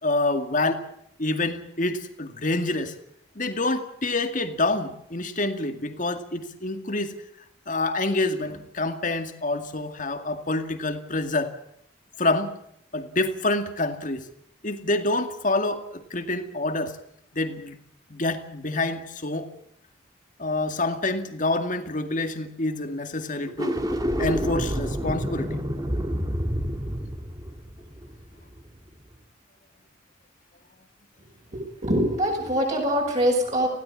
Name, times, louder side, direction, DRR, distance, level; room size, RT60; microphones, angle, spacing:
voice 1, 0.0-0.8 1.2-2.9 3.4-7.1 7.7-11.5 12.2-12.6 12.9-14.3 14.6-15.8 16.1-16.9 17.3-17.8 18.1-19.5 20.4-23.8 24.2-25.5, left 2 dB, 40° left, 7 dB, 2.2 m, -27 dB
sound 1, 23.5-28.8, equal, 20° right, 2.0 m, -28 dB
voice 2, 31.5-33.7, equal, 35° right, -2 dB, 7.1 m, -24 dB
20.0 x 16.5 x 8.6 m, 0.72 s
head